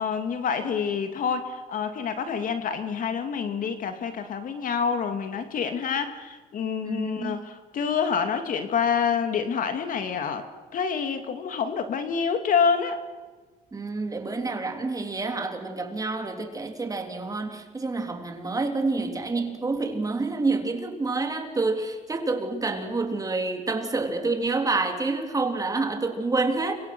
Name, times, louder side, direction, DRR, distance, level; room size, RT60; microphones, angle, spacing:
voice 1, 0.0-13.0, left 6 dB, 55° left, 8 dB, 2.5 m, -27 dB
voice 2, 6.8-7.4 13.7-26.7, right 3 dB, 20° right, 4 dB, 3.5 m, -28 dB
30.0 x 24.5 x 6.2 m, 1.3 s
cardioid pair, 110°, 17 cm